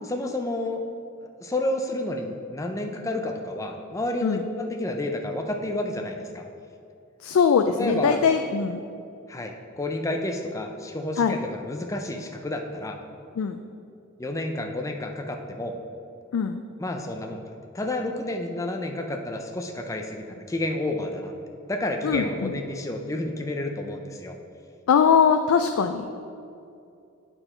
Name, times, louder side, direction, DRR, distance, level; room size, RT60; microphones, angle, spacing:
voice 1, 0.0-0.8 1.4-6.4 7.8-8.2 9.3-13.0 14.2-15.7 16.8-21.3 21.7-24.4, left 1 dB, 15° left, 3 dB, 0.4 m, -30 dB
voice 2, 7.2-8.8 11.2-11.4 13.4-13.6 16.3-16.6 22.0-22.5 24.9-26.2, left 6 dB, 80° left, 7 dB, 0.3 m, -21 dB
8.8 x 4.5 x 4.3 m, 2.6 s
head